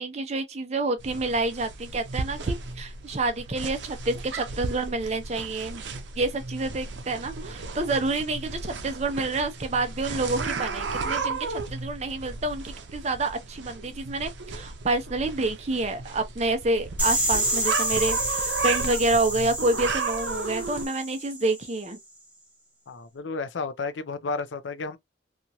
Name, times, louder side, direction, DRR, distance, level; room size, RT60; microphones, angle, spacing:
voice 1, 0.0-5.8 6.2-22.0, right 2 dB, 35° right, 0.6 m, -28 dB
sound 1, 1.0-20.9, right 4 dB, 80° right, 0.6 m, -34 dB
sound 2, 17.0-21.8, right 1 dB, 10° right, 0.9 m, -29 dB
voice 2, 22.9-25.0, left 4 dB, 90° left, 0.5 m, -32 dB
2.9 x 2.4 x 2.6 m
head